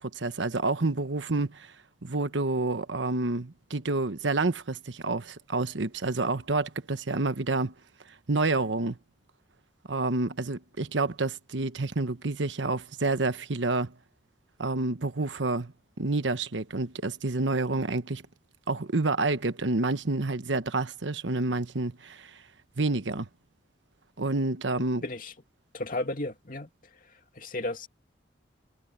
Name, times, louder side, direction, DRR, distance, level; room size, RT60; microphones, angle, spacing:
voice 1, 0.0-1.7 2.0-7.7 8.3-9.0 9.9-13.9 14.6-15.7 16.0-18.2 18.7-22.3 22.8-23.3 24.2-25.0, right 3 dB, 85° right, 1.2 m, -28 dB
voice 2, 25.0-25.3 25.7-26.7 27.3-27.9, left 2 dB, 50° left, 2.6 m, -33 dB
head